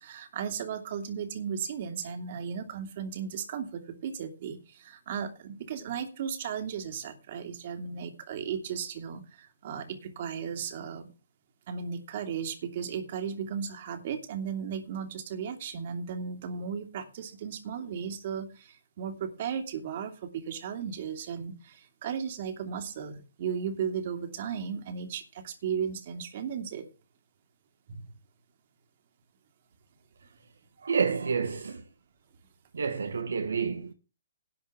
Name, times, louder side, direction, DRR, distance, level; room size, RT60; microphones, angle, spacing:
voice 1, 0.0-11.1 11.7-26.8 27.9-28.0, right 7 dB, 50° right, 2.8 m, -35 dB
voice 2, 30.8-31.8 32.7-33.9, right 5 dB, 75° right, 1.4 m, -29 dB
11.5 x 5.5 x 7.4 m
hypercardioid pair, 135°, 0 cm